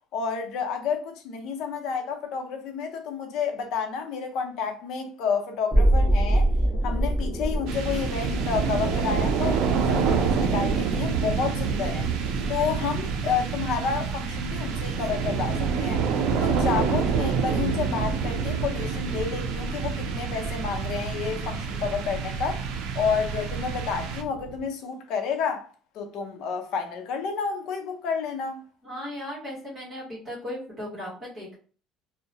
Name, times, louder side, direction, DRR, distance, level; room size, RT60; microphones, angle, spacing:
voice 1, 0.1-6.5 6.8-12.1 12.5-16.0 16.3-22.6 22.9-25.7 25.9-28.6, left 6 dB, 65° left, 0.6 m, -30 dB
sound 1, 5.7-11.7 12.0-12.1, right 1 dB, 5° right, 0.9 m, -26 dB
sound 2, 7.7-24.6, right 5 dB, 75° right, 0.4 m, -27 dB
voice 2, 28.8-31.6, left 1 dB, 25° right, 1.2 m, -36 dB
2.7 x 2.1 x 2.8 m
cardioid pair, 145°, 0 cm